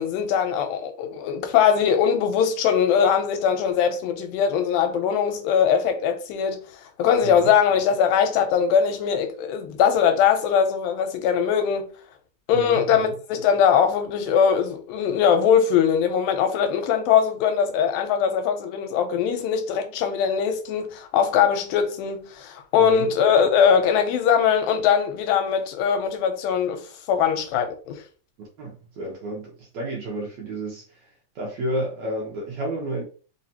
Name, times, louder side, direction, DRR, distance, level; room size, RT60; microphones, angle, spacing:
voice 1, 0.0-6.6 7.0-11.9 12.5-28.0, left 7 dB, 80° left, 2.4 m, -21 dB
voice 2, 7.2-7.5 12.5-13.1 22.8-23.1 28.4-30.8 31.4-33.0, right 1 dB, 65° right, 1.9 m, -31 dB
5.3 x 2.4 x 2.7 m
omnidirectional pair, 4.1 m